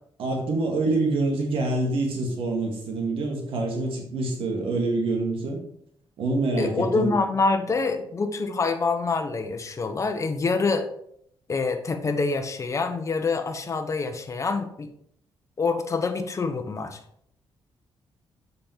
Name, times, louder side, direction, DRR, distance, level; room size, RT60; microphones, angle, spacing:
voice 1, 0.2-5.6 6.2-7.1, right 2 dB, 80° right, 0 dB, 2.0 m, -26 dB
voice 2, 6.6-10.9 11.5-14.9 15.6-17.0, left 4 dB, 35° left, 6 dB, 1.0 m, -26 dB
7.6 x 5.3 x 4.5 m, 0.70 s
cardioid pair, 100°, 9 cm